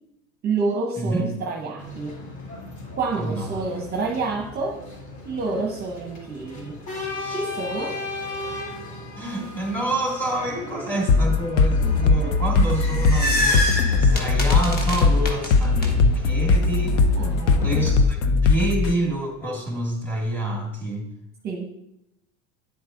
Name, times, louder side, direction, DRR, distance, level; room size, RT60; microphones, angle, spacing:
voice 1, 0.4-2.2 3.0-4.8 5.2-6.8 7.3-8.0 12.0-12.3 17.2-17.7 21.4-21.7, right 4 dB, 25° right, 1 dB, 0.8 m, -28 dB
voice 2, 1.0-1.3 3.2-3.7 7.1-7.4 9.2-17.1 17.5-21.1, right 1 dB, 5° left, -1 dB, 2.2 m, -28 dB
sound 1, 1.8-18.0, left 2 dB, 45° left, 3.2 m, -37 dB
sound 2, 11.1-18.9, left 4 dB, 70° left, 0.7 m, -19 dB
sound 3, 12.6-15.9, left 1 dB, 25° left, 1.3 m, -26 dB
9.6 x 7.7 x 2.6 m, 0.84 s
supercardioid pair, 120°, 36 cm